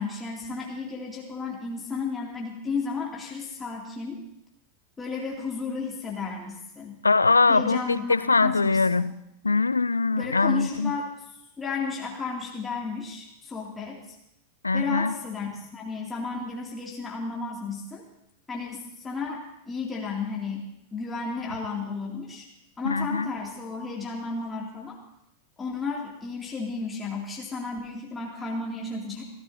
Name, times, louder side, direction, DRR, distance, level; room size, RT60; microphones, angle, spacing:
voice 1, 0.0-4.2 5.0-7.0 7.5-9.1 10.1-14.0 14.7-18.0 18.5-22.5 22.8-25.0 25.6-29.2, left 4 dB, 15° left, -3 dB, 2.5 m, -33 dB
voice 2, 7.0-9.1 9.4-10.9 14.6-15.1 22.9-23.3, left 3 dB, 80° left, 18 dB, 0.4 m, -22 dB
27.5 x 14.0 x 2.8 m, 0.82 s
figure-of-eight pair, 90°, 0 cm